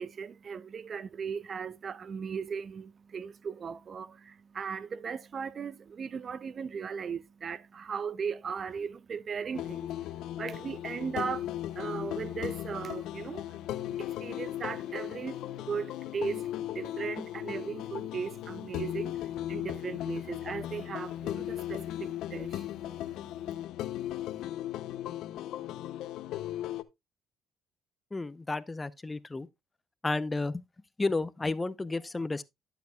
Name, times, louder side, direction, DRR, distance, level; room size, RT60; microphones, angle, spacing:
voice 1, 0.0-23.6, right 6 dB, 45° right, 0.5 m, -38 dB
sound 1, 9.5-26.8, left 12 dB, 80° left, 0.6 m, -37 dB
voice 2, 28.1-29.5 30.0-30.6 31.0-32.4, left 3 dB, 20° left, 0.6 m, -32 dB
11.5 x 8.0 x 2.3 m
supercardioid pair, 80°, 0 cm